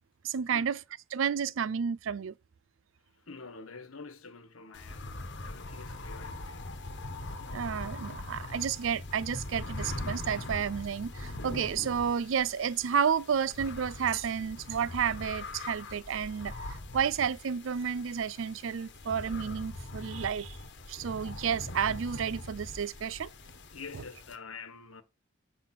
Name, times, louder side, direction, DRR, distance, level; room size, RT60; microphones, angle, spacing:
voice 1, 0.2-0.8 1.1-2.3 7.5-16.5 16.9-20.6 20.9-23.3, right 7 dB, 65° right, 0.4 m, -31 dB
voice 2, 3.1-6.6 23.7-25.0, left 4 dB, 85° left, 1.4 m, -47 dB
sound 1, 4.7-24.4, left 2 dB, 60° left, 1.3 m, -42 dB
8.4 x 5.0 x 6.0 m
head